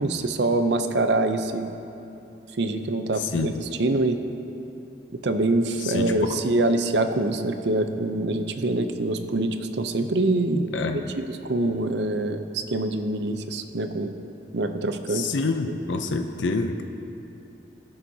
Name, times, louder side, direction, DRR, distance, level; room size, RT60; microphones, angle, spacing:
voice 1, 0.0-1.7 2.6-3.5 3.8-4.2 5.1-11.0 11.4-14.1 14.5-15.3, right 2 dB, 70° right, 8 dB, 0.6 m, -25 dB
voice 2, 3.1-3.5 5.8-6.4 10.7-11.1 15.1-16.8, left 3 dB, 85° left, 5 dB, 0.6 m, -27 dB
20.0 x 7.2 x 2.8 m, 2.8 s
head